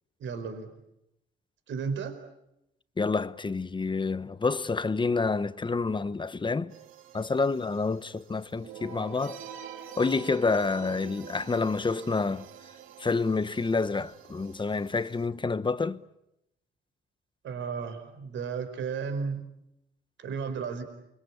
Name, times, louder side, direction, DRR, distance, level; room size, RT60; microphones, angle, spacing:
voice 1, 0.2-0.7 1.7-2.2 17.4-19.5 20.2-20.8, right 5 dB, 75° right, 4.7 m, -33 dB
voice 2, 3.0-6.7 7.1-9.4 10.0-12.5 13.0-16.0, left 4 dB, 25° left, 1.1 m, -28 dB
sound 1, 6.7-15.3, right 8 dB, 90° right, 2.8 m, -47 dB
28.5 x 24.5 x 8.5 m
cardioid pair, 90°, 20 cm